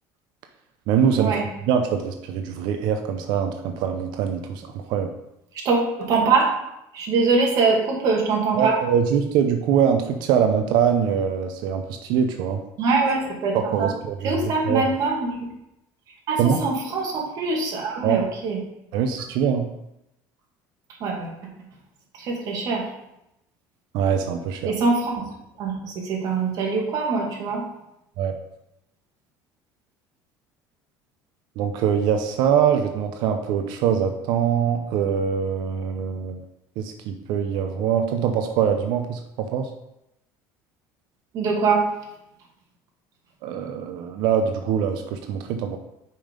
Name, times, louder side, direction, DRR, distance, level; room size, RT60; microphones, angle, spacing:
voice 1, 0.9-1.3 1.7-5.1 8.6-12.6 13.5-14.8 16.4-16.6 18.0-18.2 18.9-19.7 23.9-24.7 28.2-28.4 31.6-36.4 36.8-39.7 43.4-45.8, right 8 dB, 70° right, 6 dB, 0.7 m, -23 dB
voice 2, 5.5-6.5 6.9-8.8 12.8-13.9 14.2-15.5 16.3-18.6 21.0-21.4 22.1-22.9 24.6-25.3 25.6-27.6 41.3-41.9, right 4 dB, 55° right, -1 dB, 2.0 m, -23 dB
5.4 x 5.4 x 5.1 m, 0.86 s
cardioid pair, 140°, 8 cm